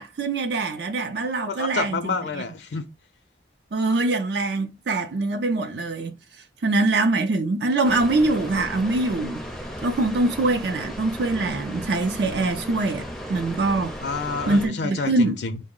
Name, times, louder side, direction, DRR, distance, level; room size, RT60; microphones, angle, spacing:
voice 1, 0.0-2.2 3.7-6.2 6.6-9.5 9.8-14.0 14.5-15.4, right 2 dB, 65° right, 0.5 m, -23 dB
voice 2, 1.5-2.9 14.0-15.6, left 4 dB, 65° left, 0.5 m, -28 dB
sound 1, 7.8-14.7, equal, ahead, 0.5 m, -35 dB
3.7 x 2.0 x 3.6 m
head